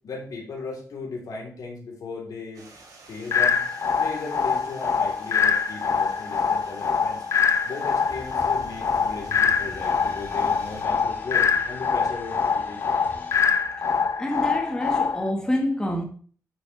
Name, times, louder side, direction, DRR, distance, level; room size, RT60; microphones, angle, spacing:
voice 1, 0.0-2.7 3.1-3.6 4.0-7.2 7.6-13.0, left 3 dB, 85° left, 3.8 m, -36 dB
Stream, 2.5-10.8, right 3 dB, 85° right, 3.1 m, -50 dB
sound 1, 3.3-15.3, left 6 dB, 50° left, 0.6 m, -24 dB
sound 2, 8.1-13.3, left 2 dB, 30° left, 2.3 m, -44 dB
voice 2, 14.2-16.0, left 1 dB, 10° left, 1.6 m, -27 dB
9.8 x 6.9 x 3.4 m
wide cardioid pair, 150°, 6 cm